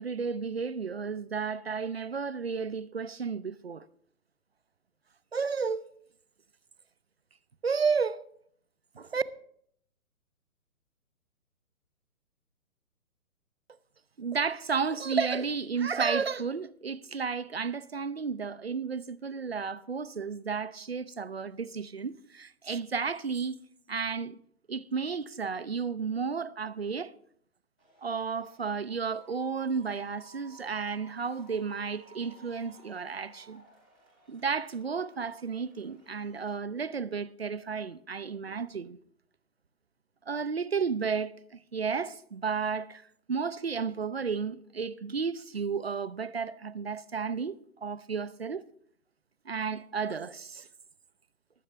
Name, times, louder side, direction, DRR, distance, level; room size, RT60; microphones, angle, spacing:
voice 1, 0.0-3.8 5.3-5.8 7.6-8.2 9.0-9.2 14.2-23.6 23.9-24.4 24.7-27.1 28.0-33.6 34.3-39.0 40.3-43.0 43.3-48.6 49.5-50.7, right 5 dB, 45° right, 0.5 m, -32 dB
sound 1, 27.8-36.5, right 2 dB, 5° left, 0.8 m, -57 dB
19.5 x 8.3 x 3.3 m
hypercardioid pair, 175°, 44 cm